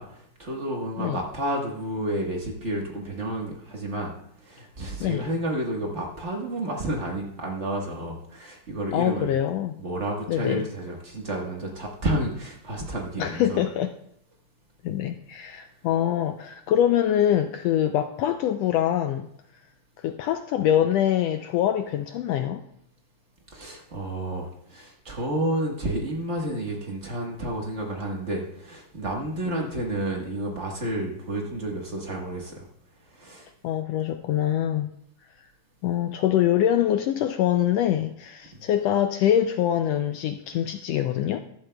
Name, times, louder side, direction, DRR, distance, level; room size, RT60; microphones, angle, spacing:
voice 1, 0.0-4.1 4.4-9.4 9.8-13.6 23.5-32.7 33.1-33.5 38.5-38.6, right 1 dB, 45° right, 0 dB, 0.9 m, -30 dB
voice 2, 8.9-9.7 10.3-10.7 13.2-13.9 14.8-19.3 20.0-22.6 29.5-29.6 33.6-34.9 35.4-35.5 35.8-41.4, left 11 dB, 80° left, 7 dB, 1.5 m, -24 dB
15.0 x 11.5 x 2.3 m, 0.72 s
omnidirectional pair, 3.3 m